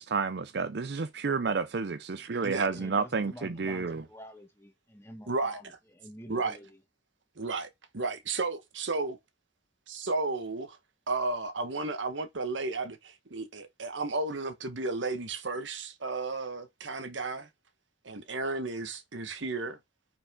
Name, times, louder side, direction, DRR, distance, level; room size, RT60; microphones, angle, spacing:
voice 1, 0.0-4.0, right 4 dB, 60° right, 0.5 m, -30 dB
voice 2, 2.7-6.8, equal, 15° left, 1.5 m, -48 dB
voice 3, 5.3-5.6 6.3-6.6 7.4-9.2 9.9-10.8 11.1-17.5 18.0-19.8, right 3 dB, 75° right, 1.3 m, -33 dB
9.9 x 5.1 x 3.7 m
head